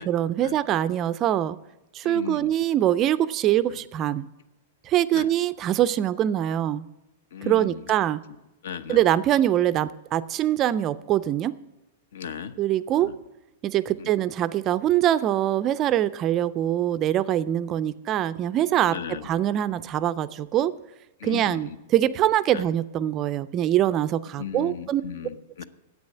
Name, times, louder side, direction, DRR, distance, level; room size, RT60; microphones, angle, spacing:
voice 1, 0.0-1.6 1.9-4.3 4.9-6.9 7.5-8.2 8.9-11.5 12.6-13.1 13.6-19.0 19.2-20.7 21.2-25.0, right 12 dB, 25° right, 15 dB, 0.3 m, -23 dB
voice 2, 2.0-2.5 3.7-3.8 5.1-5.3 7.3-7.9 8.6-9.0 12.1-12.5 13.0-13.1 14.0-14.1 18.9-19.3 21.2-21.8 22.5-22.7 24.4-25.6, left 8 dB, 75° left, 13 dB, 0.8 m, -36 dB
9.6 x 8.2 x 8.4 m, 0.94 s
supercardioid pair, 170°, 0 cm